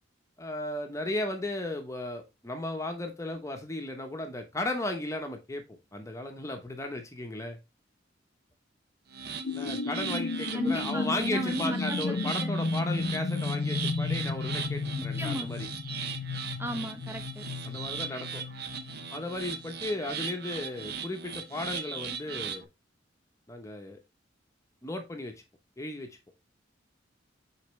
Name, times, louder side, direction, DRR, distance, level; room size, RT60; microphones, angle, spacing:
voice 1, 0.4-5.6 5.9-7.6 9.5-15.7 17.6-18.4 19.1-22.7 23.5-24.0 24.8-25.3 25.8-26.1, left 2 dB, 15° left, 0.9 m, -35 dB
sound 1, 9.1-22.7, right 6 dB, 55° right, 0.7 m, -39 dB
sound 2, 9.4-19.8, left 3 dB, 65° left, 0.6 m, -33 dB
voice 2, 10.5-12.5 15.2-15.5 16.6-17.5, equal, 10° right, 0.8 m, -34 dB
6.6 x 4.9 x 3.2 m
head